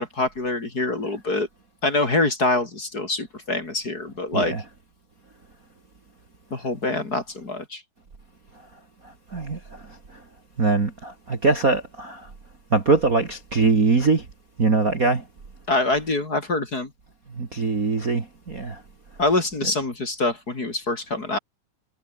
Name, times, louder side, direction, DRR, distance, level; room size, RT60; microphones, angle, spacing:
voice 1, 0.0-1.5 1.8-4.5 6.5-7.8 15.7-16.9 19.2-21.4, left 2 dB, 30° left, 3.8 m, -25 dB
voice 2, 9.3-9.8 10.6-12.3 12.7-14.2 14.6-15.2 17.4-18.8, right 3 dB, 30° right, 2.3 m, -22 dB
omnidirectional pair, 3.5 m